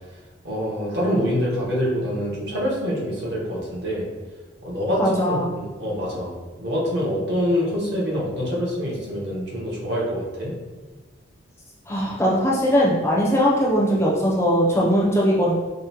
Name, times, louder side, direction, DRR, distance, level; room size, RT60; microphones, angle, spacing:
voice 1, 0.4-4.1 4.6-10.5, equal, 60° right, -4 dB, 1.0 m, -25 dB
voice 2, 5.0-5.5 11.9-15.5, equal, 15° left, -5 dB, 0.5 m, -20 dB
4.9 x 2.0 x 2.8 m, 1.3 s
head